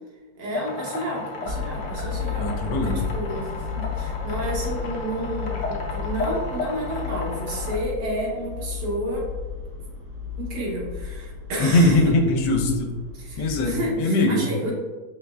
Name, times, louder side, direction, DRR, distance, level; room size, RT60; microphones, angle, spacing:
voice 1, 0.4-2.5 2.8-9.3 10.4-12.1 13.1-14.7, right 1 dB, 80° right, -3 dB, 1.7 m, -31 dB
sound 1, 0.5-7.8, left 3 dB, 60° left, 0.8 m, -33 dB
sound 2, 1.4-14.0, left 6 dB, 55° right, 1.1 m, -33 dB
voice 2, 2.4-3.0 11.6-12.9 13.4-14.4, left 1 dB, 85° left, 3 dB, 1.2 m, -21 dB
5.0 x 3.2 x 2.3 m, 1.3 s
omnidirectional pair, 1.9 m